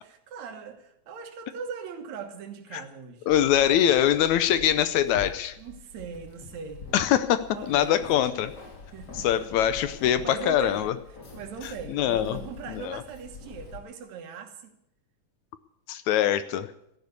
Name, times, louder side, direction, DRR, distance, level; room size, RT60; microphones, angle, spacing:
voice 1, 0.0-3.3 5.6-6.9 7.5-8.5 8.9-9.5 10.2-11.0 11.3-14.8, right 6 dB, 65° right, 2.6 m, -40 dB
voice 2, 3.3-5.6 6.9-8.5 9.2-10.9 11.9-12.4 12.8-13.0 15.9-16.7, left 11 dB, 75° left, 1.9 m, -23 dB
Keys jangling, 3.3-13.8, left 4 dB, 35° left, 2.5 m, -45 dB
13.5 x 11.0 x 8.2 m
omnidirectional pair, 3.5 m